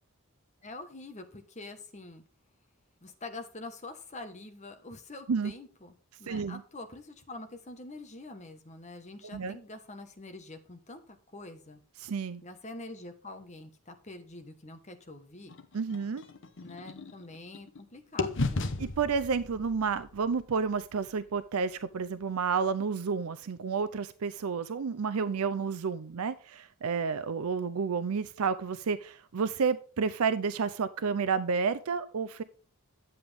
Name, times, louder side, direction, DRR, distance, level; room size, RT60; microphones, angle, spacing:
voice 1, 0.6-2.2 3.0-11.8 12.4-15.5 16.6-18.7, left 2 dB, 30° left, 1.2 m, -45 dB
voice 2, 6.3-6.6 9.3-9.6 12.0-12.4 15.7-16.2 18.8-32.4, right 5 dB, 80° right, 0.5 m, -30 dB
sound 1, 15.5-17.8 18.2-22.2, left 3 dB, 55° left, 0.9 m, -37 dB
10.0 x 7.8 x 3.5 m
head